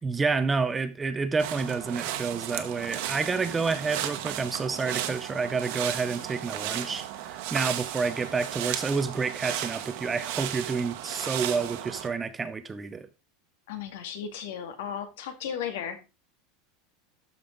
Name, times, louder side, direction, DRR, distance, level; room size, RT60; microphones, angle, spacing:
voice 1, 0.0-13.1, right 4 dB, 10° right, 0.5 m, -29 dB
sound 1, 1.4-12.1, right 11 dB, 60° right, 1.2 m, -34 dB
voice 2, 13.7-16.0, left 8 dB, 75° left, 2.0 m, -35 dB
13.0 x 5.4 x 3.8 m
supercardioid pair, 175°, 0 cm